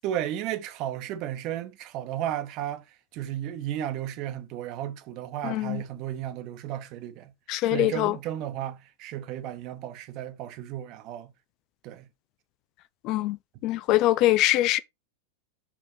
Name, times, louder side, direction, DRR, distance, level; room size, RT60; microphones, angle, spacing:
voice 1, 0.0-7.3 7.6-11.3 11.8-12.1, right 11 dB, 40° right, 1.0 m, -34 dB
voice 2, 5.4-5.8 7.5-8.1 13.0-13.4 13.6-14.8, left 15 dB, 40° left, 0.4 m, -23 dB
6.2 x 6.1 x 3.1 m
figure-of-eight pair, 90°, 0 cm